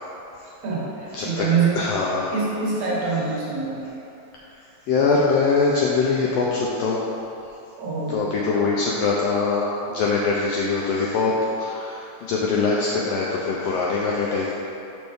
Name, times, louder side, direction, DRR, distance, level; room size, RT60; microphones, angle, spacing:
voice 1, 0.6-1.8 2.3-3.9 7.8-8.7, right 5 dB, 60° right, -5 dB, 2.0 m, -25 dB
voice 2, 1.1-1.5 1.7-2.4 4.9-7.0 8.1-14.5, left 4 dB, 90° left, -4 dB, 1.4 m, -23 dB
6.0 x 5.2 x 3.4 m, 2.8 s
omnidirectional pair, 3.4 m